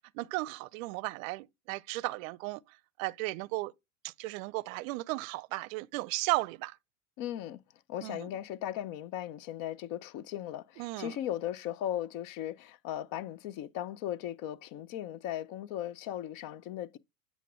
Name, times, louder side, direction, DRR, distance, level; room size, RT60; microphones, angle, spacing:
voice 1, 0.0-2.6 3.0-3.7 4.0-6.8 8.0-8.3 10.8-11.2, right 21 dB, 60° right, 0.6 m, -35 dB
voice 2, 7.2-7.6 7.9-17.0, left 11 dB, 45° left, 0.7 m, -37 dB
8.3 x 3.5 x 6.0 m
hypercardioid pair, 90°, 45 cm